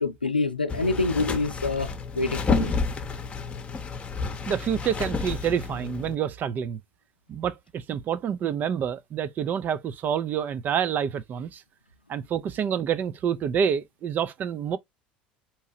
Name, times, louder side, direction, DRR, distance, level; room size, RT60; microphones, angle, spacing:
voice 1, 0.0-2.8, left 3 dB, 85° left, 0.5 m, -26 dB
sound 1, 0.7-6.1, left 3 dB, 25° left, 0.8 m, -30 dB
voice 2, 4.5-6.8 7.3-11.6 12.1-14.8, right 8 dB, 35° right, 0.5 m, -28 dB
4.6 x 2.9 x 2.6 m
figure-of-eight pair, 70°, 5 cm